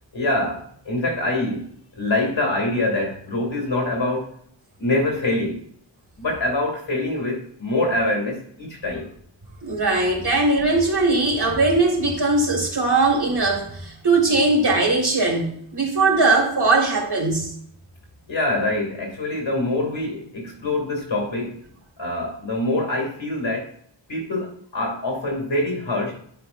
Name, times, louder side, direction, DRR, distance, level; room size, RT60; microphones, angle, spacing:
voice 1, 0.1-1.7 1.9-4.3 4.8-5.6 6.2-9.1 18.3-21.6 22.0-23.7 24.1-26.1, left 2 dB, 75° left, 0 dB, 2.8 m, -25 dB
voice 2, 9.6-17.5, right 3 dB, 60° right, 0 dB, 2.2 m, -20 dB
10.5 x 4.6 x 2.6 m, 0.63 s
wide cardioid pair, 70°, 45 cm